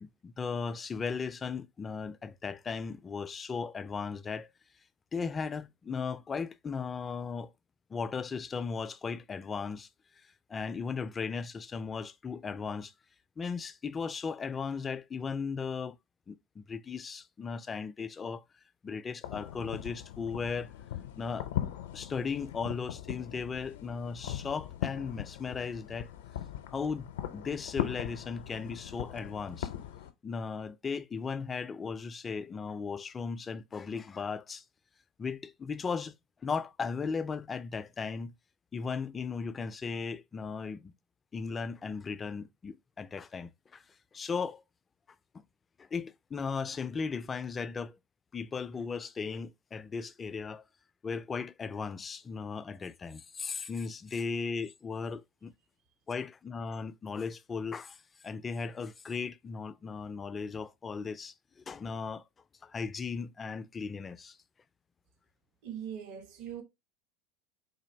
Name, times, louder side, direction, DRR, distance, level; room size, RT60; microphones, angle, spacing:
voice 1, 0.0-4.5 5.1-7.5 7.9-9.9 10.5-12.9 13.4-16.0 16.3-18.4 18.8-20.7 21.2-21.5 21.9-26.1 26.7-29.7 30.2-34.6 35.2-36.1 36.4-38.3 38.7-40.9 41.3-43.8 44.1-44.6 45.3-45.4 45.8-48.0 48.3-50.6 51.0-55.5 56.1-61.3 61.7-62.2 62.6-64.4, left 5 dB, 25° left, 0.3 m, -36 dB
sound 1, 19.2-30.1, left 11 dB, 80° left, 0.5 m, -39 dB
voice 2, 65.6-66.6, right 9 dB, 60° right, 1.0 m, -41 dB
4.1 x 2.6 x 3.1 m
hypercardioid pair, 95°, 0 cm